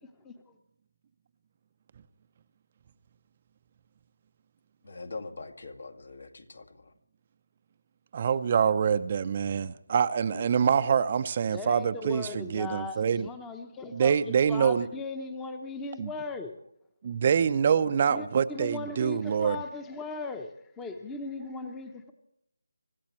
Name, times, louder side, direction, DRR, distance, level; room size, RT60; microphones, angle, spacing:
voice 1, 4.8-6.9 10.3-10.6, left 3 dB, 70° left, 5 dB, 2.2 m, -43 dB
voice 2, 8.1-13.3 13.9-14.9 16.0-16.1 17.0-19.6, right 7 dB, 35° right, 12 dB, 0.6 m, -25 dB
voice 3, 11.5-14.1 14.5-16.5 18.1-22.1, left 3 dB, 10° left, 8 dB, 0.9 m, -38 dB
25.0 x 14.0 x 3.1 m, 0.79 s
figure-of-eight pair, 160°, 0 cm